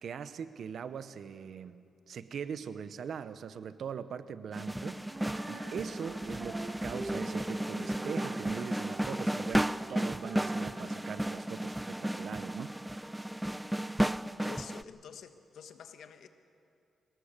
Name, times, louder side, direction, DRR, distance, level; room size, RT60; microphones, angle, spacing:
voice 1, 0.0-5.0 5.5-12.7 13.0-13.2, right 7 dB, 70° right, 13 dB, 0.9 m, -41 dB
sound 1, 4.5-14.8, right 1 dB, 5° right, 0.4 m, -34 dB
Female singing, 5.0-12.1, right 2 dB, 45° right, 5.2 m, -46 dB
voice 2, 14.4-16.3, left 7 dB, 80° left, 8 dB, 1.3 m, -48 dB
23.5 x 19.5 x 6.7 m, 2.4 s
cardioid pair, 80°, 0 cm